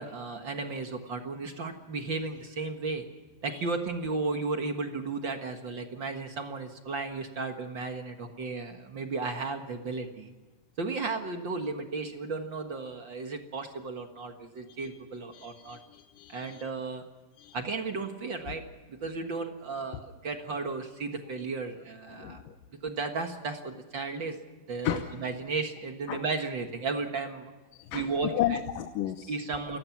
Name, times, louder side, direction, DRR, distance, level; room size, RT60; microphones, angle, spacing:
voice 1, 0.0-3.1 3.4-10.3 10.8-15.8 16.3-17.0 17.5-18.6 18.9-22.4 22.8-24.4 24.7-27.5 27.9-28.6 29.3-29.8, right 3 dB, 45° right, 5 dB, 1.7 m, -34 dB
voice 2, 15.3-16.6 17.4-17.6 18.5-18.6 22.1-22.5 24.8-25.0 26.1-26.2 27.7-29.3, left 12 dB, 80° left, 6 dB, 2.6 m, -33 dB
29.0 x 18.0 x 6.0 m, 1.2 s
omnidirectional pair, 4.0 m